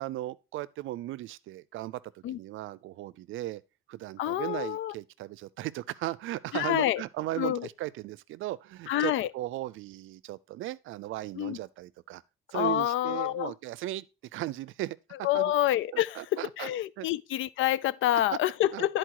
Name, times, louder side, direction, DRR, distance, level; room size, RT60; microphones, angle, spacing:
voice 1, 0.0-2.0 2.3-3.6 3.9-12.2 12.5-14.1 14.3-15.0 15.3-15.5 15.9-16.7 17.0-17.1 18.7-18.8, right 15 dB, 80° right, 0.5 m, -36 dB
voice 2, 4.2-4.9 6.5-7.0 7.4-7.7 8.9-9.3 11.4-11.6 12.5-13.5 15.2-19.0, left 13 dB, 80° left, 0.5 m, -28 dB
11.5 x 4.4 x 4.7 m
cardioid pair, 90°, 20 cm